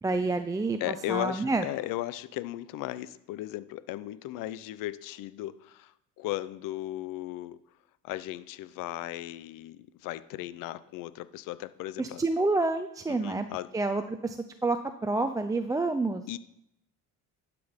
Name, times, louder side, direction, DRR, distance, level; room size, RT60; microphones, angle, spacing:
voice 1, 0.0-1.6 12.0-13.5 13.7-14.4 14.6-14.8 15.0-16.2, right 3 dB, 10° right, 7 dB, 0.5 m, -28 dB
voice 2, 0.8-7.6 8.0-12.2 13.1-13.7 16.3-16.4, left 15 dB, 75° left, 16 dB, 0.6 m, -36 dB
11.5 x 6.0 x 5.2 m, 0.78 s
cardioid pair, 115°, 33 cm